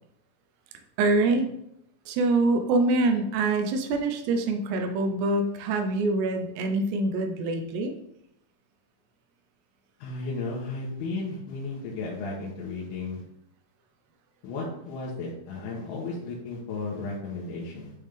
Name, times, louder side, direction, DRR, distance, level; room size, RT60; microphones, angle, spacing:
voice 1, 1.0-1.5 2.1-7.9, right 2 dB, 85° right, 5 dB, 2.8 m, -25 dB
voice 2, 10.0-13.2 14.4-17.9, left 3 dB, 75° left, -5 dB, 2.9 m, -34 dB
9.1 x 3.6 x 3.4 m, 0.76 s
omnidirectional pair, 4.7 m